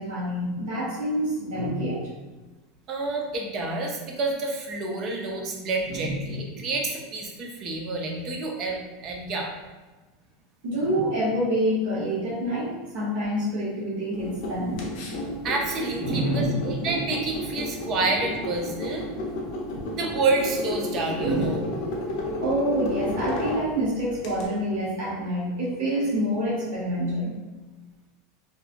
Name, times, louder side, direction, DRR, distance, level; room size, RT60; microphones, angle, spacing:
voice 1, 0.0-2.1 5.9-6.7 10.6-14.9 15.9-17.0 21.2-21.7 22.0-27.3, equal, 60° right, -7 dB, 0.9 m, -27 dB
voice 2, 2.9-9.5 15.4-19.1 20.0-21.6, right 3 dB, 30° right, 1 dB, 0.4 m, -28 dB
sound 1, 14.1-24.4, left 1 dB, 45° left, 0.5 m, -32 dB
2.7 x 2.3 x 2.4 m, 1.2 s
supercardioid pair, 180°, 0 cm